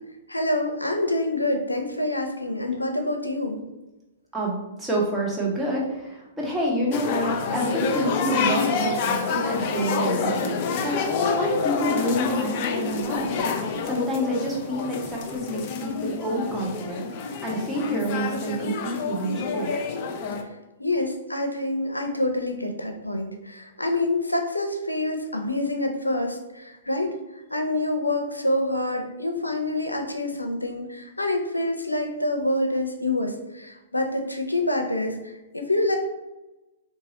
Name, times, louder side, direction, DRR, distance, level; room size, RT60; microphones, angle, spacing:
voice 1, 0.3-3.6 20.8-27.2 27.5-36.0, left 1 dB, 90° left, 4 dB, 0.6 m, -26 dB
voice 2, 4.3-13.4 13.8-17.1 17.4-19.7, right 1 dB, 10° right, -4 dB, 1.1 m, -28 dB
sound 1, 6.9-20.4, left 5 dB, 40° left, 0.5 m, -28 dB
3.9 x 2.6 x 2.8 m, 1.0 s
figure-of-eight pair, 110°, 0 cm